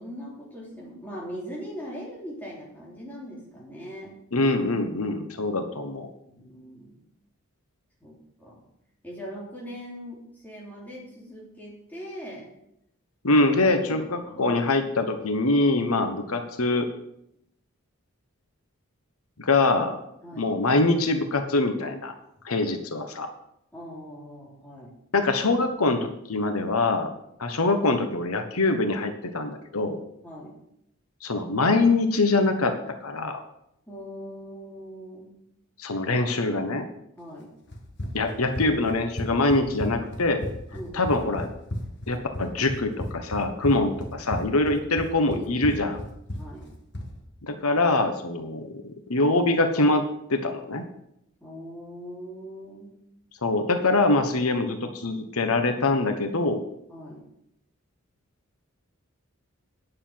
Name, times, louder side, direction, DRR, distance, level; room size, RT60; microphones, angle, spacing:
voice 1, 0.0-4.1 6.2-7.0 8.0-8.6 9.0-12.5 14.2-14.5 16.0-16.3 20.2-20.5 23.7-24.9 30.2-30.6 33.9-35.3 37.2-37.5 40.7-41.0 45.3-45.8 46.3-46.7 51.4-52.9 56.9-57.2, equal, 10° left, -5 dB, 3.3 m, -40 dB
voice 2, 4.3-6.1 13.2-16.9 19.4-20.0 20.3-22.1 22.4-23.3 25.1-27.1 27.4-30.0 31.2-32.8 33.0-33.4 35.8-36.8 38.1-40.4 40.9-41.5 42.1-46.0 47.4-50.8 53.4-56.6, left 2 dB, 85° left, 6 dB, 1.2 m, -24 dB
Run, 37.7-47.1, left 1 dB, 50° left, 1.6 m, -34 dB
9.9 x 6.7 x 7.5 m, 0.78 s
head